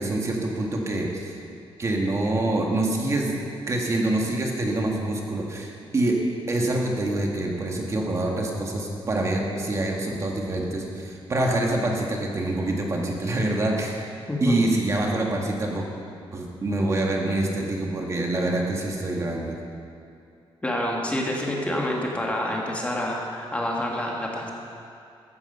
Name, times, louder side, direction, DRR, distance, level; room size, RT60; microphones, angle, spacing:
voice 1, 0.0-1.4 1.8-3.4 3.7-6.2 6.5-14.1 14.4-15.9 16.3-19.6, right 2 dB, 30° right, 0 dB, 1.8 m, -26 dB
voice 2, 14.3-14.6 20.6-24.5, left 1 dB, 15° left, -2 dB, 1.6 m, -27 dB
15.0 x 14.0 x 5.5 m, 2.5 s
wide cardioid pair, 170°, 10 cm